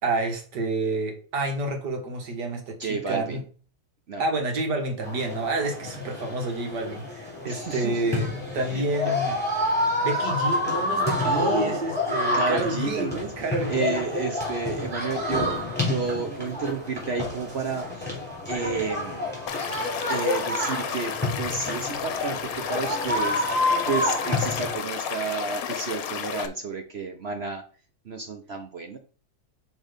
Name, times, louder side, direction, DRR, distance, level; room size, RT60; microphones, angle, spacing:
voice 1, 0.0-3.4 4.2-9.4 10.0-13.1 13.4-14.1, right 2 dB, 90° right, 3 dB, 2.1 m, -29 dB
voice 2, 2.8-3.4 4.1-4.2 7.5-8.0 8.7-9.1 11.2-11.8 12.3-13.3 13.7-18.2 18.5-19.4 20.0-27.6 28.1-29.0, right 4 dB, 55° right, 5 dB, 0.8 m, -31 dB
sound 1, 5.0-24.7, left 2 dB, 5° left, 3.5 m, -28 dB
Stream / Liquid, 19.5-26.5, left 8 dB, 65° left, 1.1 m, -32 dB
6.0 x 4.0 x 5.1 m, 0.39 s
omnidirectional pair, 1.7 m